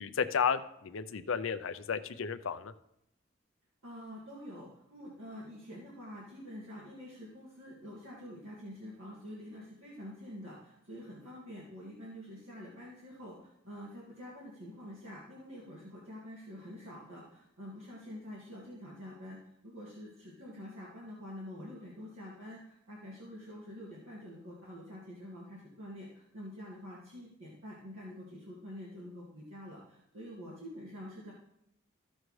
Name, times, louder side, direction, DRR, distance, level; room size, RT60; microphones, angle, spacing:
voice 1, 0.0-2.7, left 6 dB, 70° left, 12 dB, 0.5 m, -33 dB
voice 2, 3.8-31.3, equal, 75° right, -6 dB, 2.0 m, -47 dB
14.0 x 6.4 x 3.2 m, 0.79 s
head